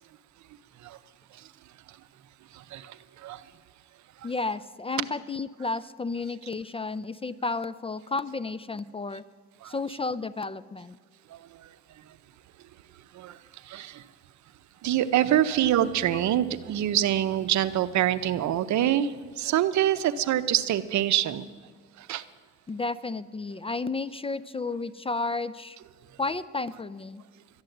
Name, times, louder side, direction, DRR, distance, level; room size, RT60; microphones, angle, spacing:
voice 1, 4.2-9.2 9.6-11.0 22.7-25.8 26.2-27.2, left 3 dB, 20° left, 16 dB, 0.3 m, -32 dB
voice 2, 14.8-19.1 19.4-21.4 22.1-22.2, right 11 dB, 70° right, 14 dB, 0.7 m, -24 dB
Acoustic guitar, 15.6-18.7, right 4 dB, 25° right, 4.1 m, -45 dB
12.5 x 10.5 x 7.8 m, 1.5 s
cardioid pair, 90°, 30 cm